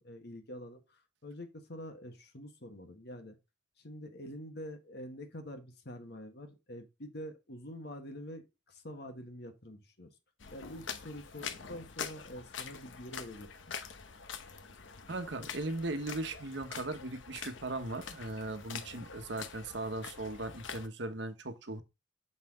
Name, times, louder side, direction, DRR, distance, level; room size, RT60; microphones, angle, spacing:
voice 1, 0.0-3.4 3.8-10.1 10.5-13.7, equal, 55° left, 1.4 m, -46 dB
sound 1, 10.4-20.9, left 6 dB, 75° left, 0.9 m, -45 dB
voice 2, 15.1-21.8, right 2 dB, 65° right, 1.1 m, -38 dB
6.7 x 5.7 x 3.7 m
head